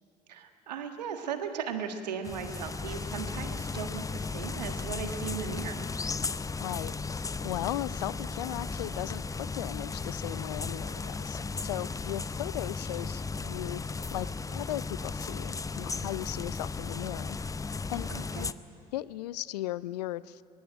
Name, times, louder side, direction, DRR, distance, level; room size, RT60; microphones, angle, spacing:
voice 1, 0.3-5.9 18.1-18.5, right 7 dB, 80° right, 7 dB, 1.6 m, -37 dB
sound 1, 2.2-18.5, left 4 dB, 15° left, 0.6 m, -35 dB
voice 2, 6.6-17.4 17.9-18.1 18.3-18.5 18.9-20.4, left 15 dB, 75° left, 20 dB, 0.5 m, -37 dB
23.5 x 19.5 x 9.0 m, 2.4 s
figure-of-eight pair, 55°, 21 cm